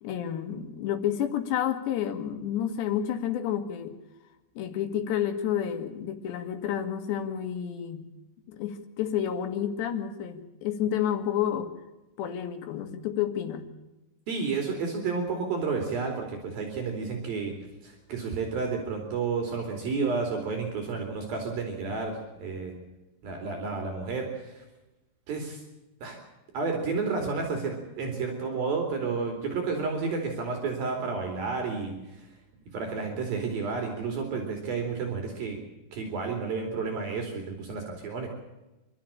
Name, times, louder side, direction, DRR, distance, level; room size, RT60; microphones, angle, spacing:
voice 1, 0.0-4.0 4.6-8.1 8.5-11.7 12.2-13.7, left 9 dB, 90° left, 8 dB, 4.1 m, -30 dB
voice 2, 14.3-17.5 17.8-22.7 23.2-24.6 25.3-25.6 26.0-26.2 26.5-31.9 32.7-35.6 35.9-38.3, right 4 dB, 60° right, 3 dB, 4.5 m, -31 dB
27.0 x 13.0 x 8.7 m, 1.0 s
omnidirectional pair, 4.8 m